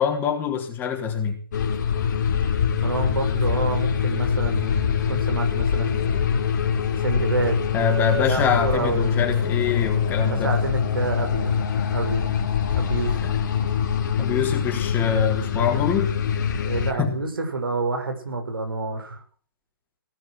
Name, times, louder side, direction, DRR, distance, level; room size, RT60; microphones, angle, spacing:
voice 1, 0.0-1.4 7.7-10.5 13.2-13.3 14.2-16.1 17.0-17.1, left 7 dB, 15° left, 2 dB, 4.0 m, -24 dB
sound 1, 1.5-16.9, left 7 dB, 50° left, 3.6 m, -24 dB
voice 2, 2.8-6.4 7.0-7.6 8.2-9.1 10.2-11.6 11.9-12.4 12.7-13.3 16.6-19.2, right 3 dB, 70° right, 5 dB, 6.1 m, -28 dB
19.0 x 12.0 x 6.3 m, 0.42 s
figure-of-eight pair, 135°, 12 cm